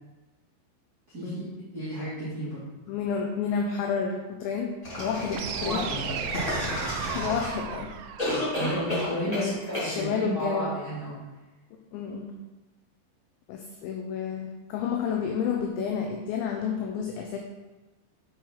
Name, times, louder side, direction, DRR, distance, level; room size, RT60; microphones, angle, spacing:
voice 1, 1.1-1.5 1.7-2.6 5.6-6.1 8.5-11.2, equal, 30° right, -12 dB, 1.8 m, -32 dB
voice 2, 2.9-5.8 7.1-7.9 8.2-8.4 9.2-10.7 11.9-12.3 13.5-17.4, left 6 dB, 85° left, 2 dB, 2.6 m, -30 dB
sound 1, 4.8-7.7 8.2-9.5 9.7-9.9, left 1 dB, 35° left, 0.5 m, -31 dB
sound 2, 5.3-9.3, right 7 dB, 85° right, 2.6 m, -36 dB
8.6 x 4.4 x 4.7 m, 1.2 s
omnidirectional pair, 5.9 m